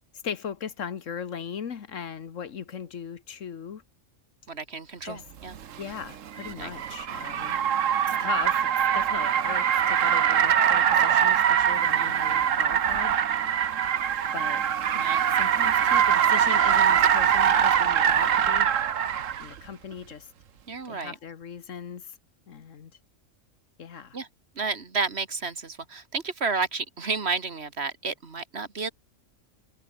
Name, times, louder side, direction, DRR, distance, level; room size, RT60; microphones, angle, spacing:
voice 1, 0.2-3.8 5.0-5.2 5.8-7.6 8.1-13.2 14.3-14.6 14.9-18.7 19.4-20.3 20.9-22.2 22.5-22.9 23.8-24.2, left 7 dB, 75° left, 1.6 m, -38 dB
voice 2, 4.5-5.6 6.6-6.7 8.1-8.2 11.9-12.1 15.0-15.2 20.7-21.2 24.1-24.3 24.6-28.9, right 4 dB, 55° right, 2.1 m, -31 dB
Car, 5.5-19.5, right 9 dB, 80° right, 1.4 m, -23 dB
omnidirectional pair, 1.3 m